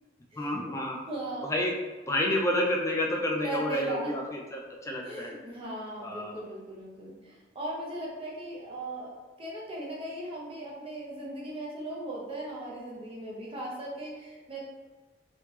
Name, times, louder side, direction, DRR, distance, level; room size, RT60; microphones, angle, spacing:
voice 1, 0.4-1.0 1.4-1.8 2.1-5.3 6.0-6.4, left 1 dB, 15° left, 0 dB, 0.4 m, -29 dB
voice 2, 1.1-1.5 3.4-4.1 5.0-14.6, right 1 dB, 30° right, -4 dB, 0.8 m, -38 dB
3.2 x 2.9 x 3.2 m, 1.2 s
head